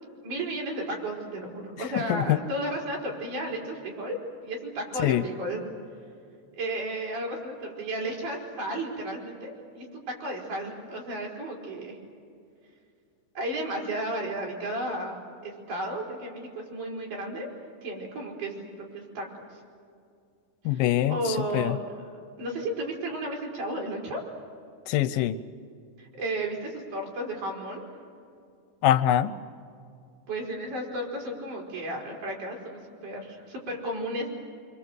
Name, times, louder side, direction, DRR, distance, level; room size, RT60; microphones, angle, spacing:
voice 1, 0.2-4.2 4.4-5.6 6.5-12.0 13.3-15.2 15.4-17.5 17.8-19.3 20.7-21.8 22.4-24.2 26.0-27.8 30.3-34.3, right 1 dB, 60° right, -2 dB, 6.4 m, -33 dB
voice 2, 20.7-21.2 21.5-21.8 24.9-25.4 28.8-29.3, left 12 dB, 85° left, 13 dB, 2.6 m, -23 dB
25.5 x 25.5 x 7.9 m, 2.4 s
omnidirectional pair, 4.1 m